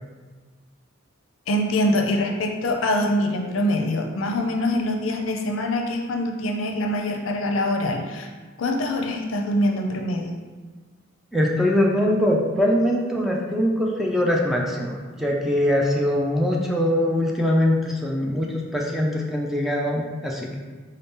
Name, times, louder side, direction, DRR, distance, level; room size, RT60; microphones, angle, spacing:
voice 1, 1.5-8.3 8.6-10.3, left 1 dB, 70° left, 3 dB, 0.5 m, -24 dB
voice 2, 11.3-20.6, left 1 dB, ahead, -2 dB, 0.4 m, -22 dB
3.8 x 2.7 x 3.6 m, 1.4 s
head